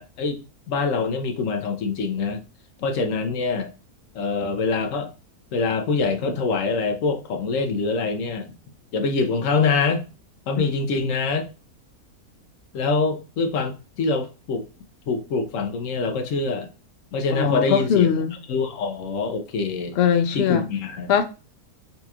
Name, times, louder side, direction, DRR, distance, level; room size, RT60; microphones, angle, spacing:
voice 1, 0.0-2.4 2.8-3.7 4.1-5.1 5.5-8.5 8.9-10.0 10.5-11.5 12.7-14.6 15.1-16.7 17.1-18.1 18.5-20.0 20.3-21.1, left 4 dB, 65° left, 0.9 m, -24 dB
voice 2, 17.3-18.3 20.0-20.7 21.1-21.2, left 8 dB, 80° left, 0.5 m, -20 dB
4.2 x 2.8 x 2.3 m
omnidirectional pair, 1.6 m